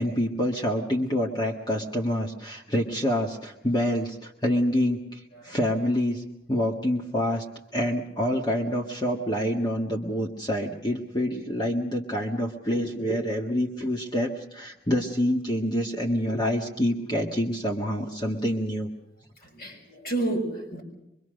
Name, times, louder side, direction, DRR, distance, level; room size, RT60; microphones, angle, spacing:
voice 1, 0.0-6.2 6.5-7.4 7.7-18.9, equal, 20° left, 0 dB, 1.6 m, -27 dB
voice 2, 19.4-20.8, right 2 dB, 50° left, 2 dB, 6.2 m, -31 dB
24.0 x 23.5 x 6.5 m, 0.84 s
head